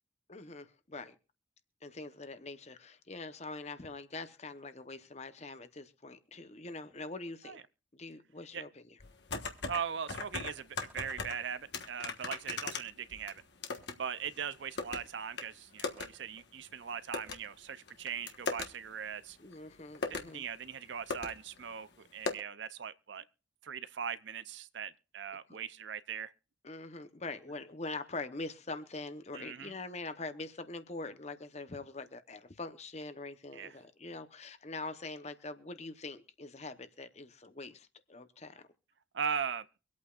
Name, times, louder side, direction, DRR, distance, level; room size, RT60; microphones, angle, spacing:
voice 1, 0.3-1.2 1.8-7.6 7.9-8.8 19.4-20.4 25.5-25.6 26.6-38.6, left 3 dB, 35° left, 0.9 m, -43 dB
sound 1, 9.0-9.8 10.1-11.4 11.7-14.0 14.3-15.0 15.4-15.5 15.8-16.1 16.4-16.5 17.1-17.4 17.9-18.7 19.5-19.6 19.9-20.3 20.8-20.9 21.1-21.3 21.6-21.7 22.3-22.4, left 4 dB, 60° left, 1.3 m, -37 dB
voice 2, 9.7-13.4 14.0-19.4 20.1-23.2 23.6-26.3 29.3-29.8 33.5-33.7 39.1-39.7, right 7 dB, 70° right, 0.6 m, -40 dB
24.5 x 8.5 x 2.4 m
head